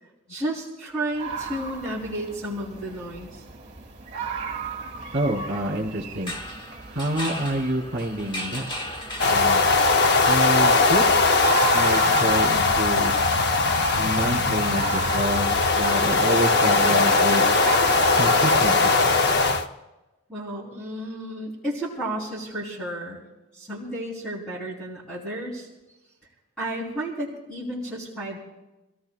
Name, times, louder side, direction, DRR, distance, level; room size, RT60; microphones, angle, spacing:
voice 1, 0.3-3.4 20.3-23.2 23.5-25.7 26.6-28.4, right 1 dB, 5° left, -8 dB, 3.8 m, -32 dB
sound 1, 1.1-19.5, right 6 dB, 30° right, 1.5 m, -37 dB
voice 2, 5.1-6.3 6.9-8.7 9.3-9.7 10.3-11.0 11.7-13.1 14.0-17.5 18.2-18.9, right 1 dB, 50° right, -3 dB, 3.1 m, -27 dB
sound 2, 6.1-10.0, left 1 dB, 20° left, 1.1 m, -36 dB
sound 3, 9.2-19.6, left 3 dB, 50° left, 0.7 m, -20 dB
27.5 x 17.5 x 2.4 m, 1.0 s
head